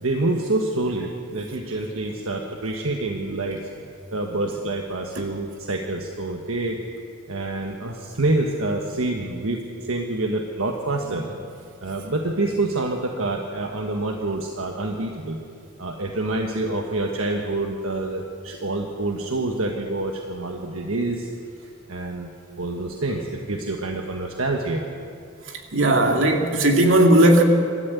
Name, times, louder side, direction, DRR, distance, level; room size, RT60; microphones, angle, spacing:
voice 1, 0.0-3.7 4.1-6.8 7.3-11.3 11.8-15.4 15.8-21.3 21.6-22.3 22.6-24.9, right 2 dB, 80° right, 2 dB, 1.4 m, -27 dB
voice 2, 25.7-27.4, right 1 dB, 65° right, 2 dB, 2.4 m, -16 dB
25.5 x 13.0 x 8.2 m, 2.5 s
head